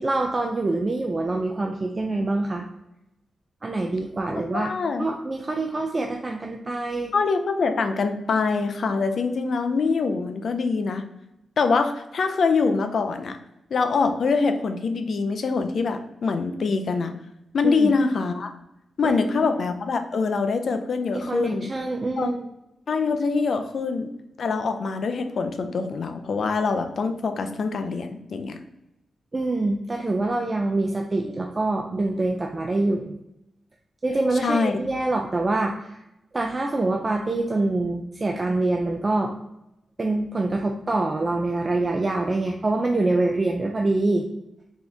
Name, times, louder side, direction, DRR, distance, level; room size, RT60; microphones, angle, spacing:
voice 1, 0.0-2.7 3.6-4.7 5.0-7.1 17.6-17.9 19.0-19.5 21.1-22.4 29.3-33.1 34.0-36.0 36.3-39.4 40.0-44.2, right 2 dB, 20° right, 2 dB, 0.3 m, -25 dB
voice 2, 4.5-5.1 7.1-11.0 11.6-13.4 13.7-17.1 17.5-18.5 19.0-21.7 22.2-22.4 22.9-24.1 24.4-28.6 34.4-34.7, left 4 dB, 50° left, 7 dB, 0.4 m, -24 dB
4.4 x 2.9 x 3.3 m, 0.88 s
wide cardioid pair, 165°, 0 cm